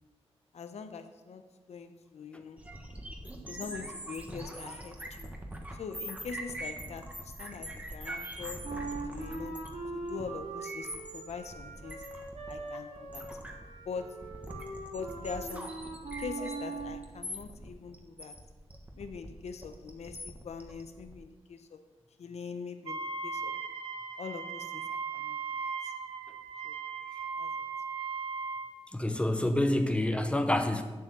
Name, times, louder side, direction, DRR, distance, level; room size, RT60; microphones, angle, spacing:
voice 1, 0.5-2.7 3.5-5.3 5.8-8.7 9.1-9.6 9.9-12.1 12.5-13.4 13.9-14.3 14.9-15.8 16.2-18.4 19.0-21.8 22.2-23.5 24.2-25.4 25.8-25.9 26.6-26.8 27.4-27.5, left 5 dB, 80° left, 9 dB, 0.9 m, -43 dB
sound 1, 2.6-21.1, right 1 dB, 15° right, 1.3 m, -43 dB
Wind instrument woodwind instrument, 8.6-17.1, right 3 dB, 90° right, 2.1 m, -41 dB
Wind instrument woodwind instrument 2, 22.9-28.8, right 5 dB, 55° right, 0.9 m, -37 dB
voice 2, 28.9-30.8, left 1 dB, 10° left, 7 dB, 0.9 m, -27 dB
8.6 x 7.7 x 6.8 m, 1.2 s
wide cardioid pair, 145°, 11 cm